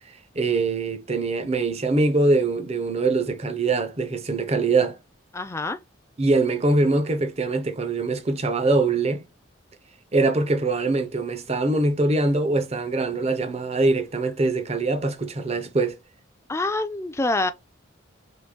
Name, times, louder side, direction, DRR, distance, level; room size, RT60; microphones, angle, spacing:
voice 1, 0.3-5.0 6.2-9.2 10.1-16.0, right 3 dB, 30° right, 0.6 m, -23 dB
voice 2, 5.3-5.8 16.5-17.5, left 2 dB, 15° left, 0.4 m, -26 dB
3.9 x 3.1 x 3.6 m
head